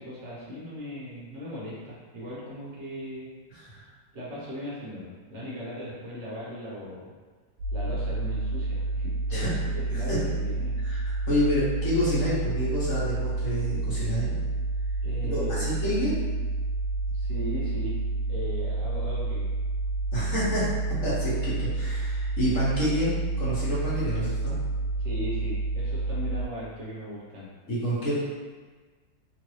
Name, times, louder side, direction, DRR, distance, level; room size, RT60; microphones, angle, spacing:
voice 1, 0.0-3.3 4.1-7.1 7.7-10.8 15.0-15.8 17.1-18.0 18.3-19.5 25.0-27.5, equal, 55° right, -7 dB, 0.8 m, -38 dB
sound 1, 7.6-26.5, right 2 dB, 80° right, 1.2 m, -29 dB
voice 2, 10.9-14.4 15.3-16.1 20.1-20.6 21.0-23.1 23.4-24.6 27.7-28.1, equal, 50° left, -9 dB, 1.1 m, -28 dB
3.0 x 2.6 x 3.0 m, 1.4 s
omnidirectional pair, 1.9 m